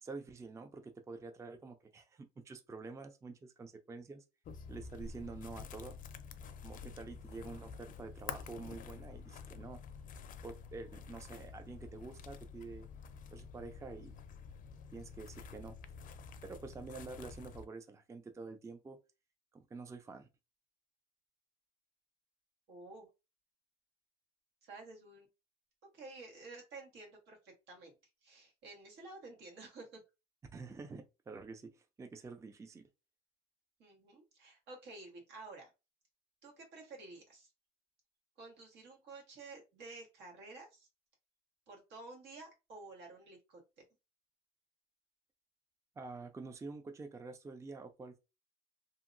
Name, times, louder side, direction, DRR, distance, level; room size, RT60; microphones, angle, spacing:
voice 1, 0.0-4.2 4.7-6.0 6.6-9.8 10.4-12.9 13.3-14.1 14.9-15.8 16.4-19.0 19.5-20.3 30.5-32.9 46.0-48.2, right 4 dB, 15° right, 0.4 m, -48 dB
sound 1, 4.4-17.7, left 6 dB, 55° left, 0.5 m, -49 dB
voice 2, 22.7-23.1 24.6-25.3 25.9-27.9 28.2-30.0 33.8-35.7 36.4-37.5 38.4-40.9 41.7-43.6, right 3 dB, 80° right, 1.6 m, -52 dB
2.8 x 2.7 x 2.5 m
cardioid pair, 110°, 17 cm